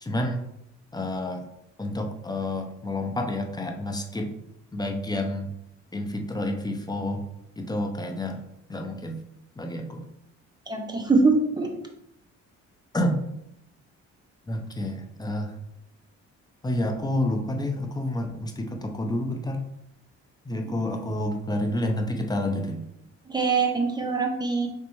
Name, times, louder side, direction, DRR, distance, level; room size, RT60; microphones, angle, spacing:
voice 1, 0.0-0.4 0.9-1.4 1.8-4.3 4.7-5.5 5.9-7.2 7.6-8.4 8.7-9.2 9.6-10.0 12.9-13.2 14.5-15.5 16.6-19.6 20.4-22.9, left 1 dB, 15° left, 3 dB, 0.6 m, -29 dB
voice 2, 10.7-11.7 23.3-24.7, right 4 dB, 15° right, 2 dB, 0.8 m, -23 dB
4.2 x 3.3 x 3.0 m, 0.80 s
cardioid pair, 90°, 30 cm